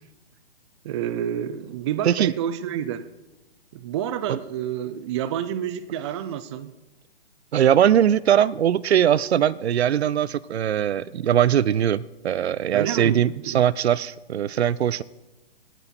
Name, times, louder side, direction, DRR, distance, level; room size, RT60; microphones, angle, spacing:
voice 1, 0.8-3.1 3.7-6.7 12.7-13.6, right 10 dB, 30° right, 14 dB, 0.5 m, -29 dB
voice 2, 7.5-15.0, right 10 dB, 80° right, 23 dB, 0.5 m, -21 dB
18.0 x 8.8 x 4.3 m, 1.1 s
hypercardioid pair, 140°, 32 cm